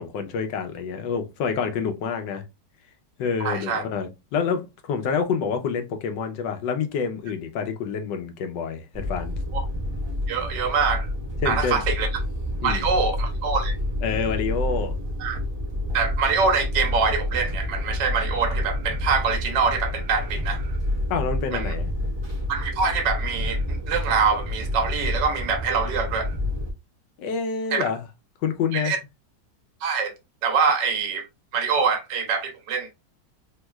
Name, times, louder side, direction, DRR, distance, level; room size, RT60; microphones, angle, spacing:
voice 1, 0.0-2.4 3.2-9.3 11.4-11.8 12.6-12.8 14.0-14.9 21.1-21.9 27.2-28.0 28.4-28.9, left 6 dB, 80° left, 1.4 m, -27 dB
voice 2, 3.4-3.8 9.5-9.6 10.3-11.1 11.4-12.1 12.6-13.7 15.2-15.4 15.9-20.7 21.5-21.7 22.5-26.3 27.7-27.9 28.7-29.0 29.8-30.1 30.4-31.2 31.5-32.9, right 5 dB, 80° right, 1.4 m, -24 dB
sound 1, 8.9-26.7, left 1 dB, 20° right, 0.7 m, -28 dB
3.6 x 3.0 x 2.2 m
omnidirectional pair, 1.9 m